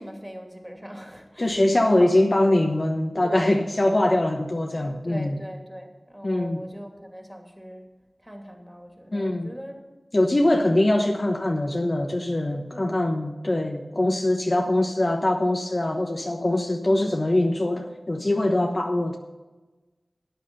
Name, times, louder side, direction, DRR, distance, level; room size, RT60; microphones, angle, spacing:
voice 1, 0.0-2.1 3.2-3.6 5.0-7.9 8.2-9.9 10.6-10.8 12.7-13.0, equal, 5° right, 2 dB, 2.7 m, -40 dB
voice 2, 1.4-5.4 6.2-6.6 9.1-9.5 10.1-19.2, left 1 dB, 40° left, 3 dB, 1.0 m, -23 dB
13.5 x 9.3 x 5.5 m, 1.2 s
wide cardioid pair, 55°, 0 cm